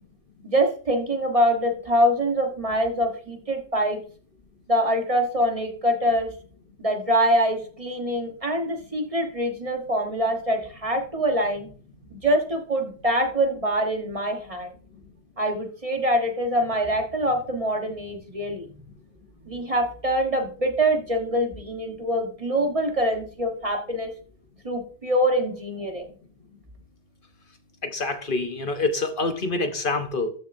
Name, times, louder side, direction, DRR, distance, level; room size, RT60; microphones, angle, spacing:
voice 1, 0.4-4.0 4.7-6.3 6.8-11.7 12.1-14.7 15.4-18.7 19.4-24.1 24.6-26.1, equal, 35° right, 3 dB, 1.3 m, -24 dB
voice 2, 27.8-30.3, left 3 dB, 55° left, 7 dB, 1.1 m, -26 dB
13.0 x 6.5 x 2.6 m, 0.43 s
omnidirectional pair, 1.1 m